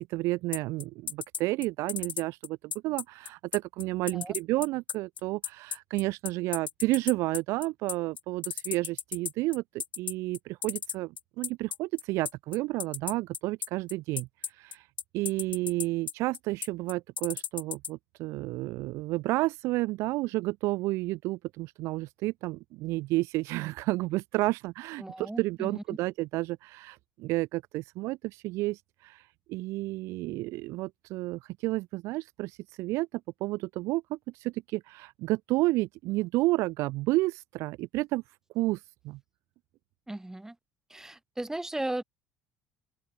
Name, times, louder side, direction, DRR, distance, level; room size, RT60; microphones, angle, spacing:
voice 1, 0.1-14.3 14.6-14.8 15.1-29.2 29.5-33.1 33.4-38.2 38.5-38.8 39.0-39.2, right 20 dB, 60° right, 1.2 m, -31 dB
sound 1, 0.5-17.9, left 7 dB, 85° left, 2.8 m, -34 dB
voice 2, 25.0-25.8 40.1-40.6 40.9-42.0, right 1 dB, 10° right, 7.9 m, -36 dB
open air
figure-of-eight pair, 55°, 5 cm